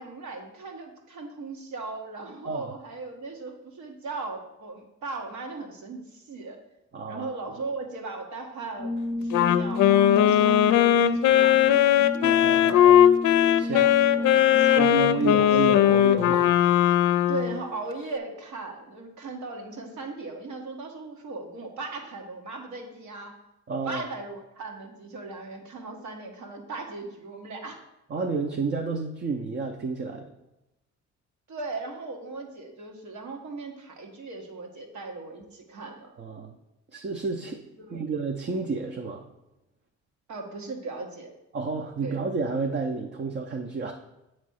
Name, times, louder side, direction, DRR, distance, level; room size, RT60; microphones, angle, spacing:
voice 1, 0.0-6.6 7.1-12.1 13.6-15.4 17.3-23.4 23.8-27.9 31.5-36.1 37.8-38.0 40.3-41.3 42.0-42.2, right 3 dB, 70° right, 2 dB, 1.4 m, -38 dB
voice 2, 6.9-7.5 12.2-13.1 13.6-13.9 14.8-16.5 23.7-24.0 28.1-30.3 36.2-36.5 36.9-37.6 37.9-39.3 41.5-43.9, right 4 dB, 35° right, 3 dB, 0.7 m, -30 dB
Brass instrument, 8.8-15.2, left 1 dB, 45° left, 0.8 m, -32 dB
Wind instrument woodwind instrument, 9.3-17.6, left 11 dB, 90° left, 0.5 m, -19 dB
8.2 x 3.1 x 6.3 m, 0.93 s
cardioid pair, 90°, 30 cm